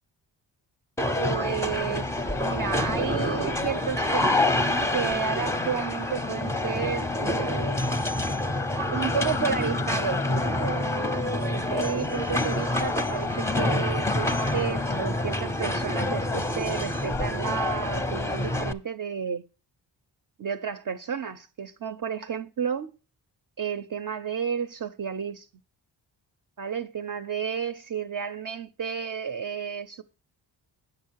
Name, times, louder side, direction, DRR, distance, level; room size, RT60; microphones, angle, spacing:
sound 1, 1.0-18.7, left 2 dB, 5° left, 0.6 m, -27 dB
voice 1, 1.2-7.8 8.9-19.4 20.4-22.9 23.6-25.5 26.6-30.0, right 7 dB, 50° right, 0.6 m, -32 dB
8.9 x 6.5 x 4.5 m
cardioid pair, 90°, 43 cm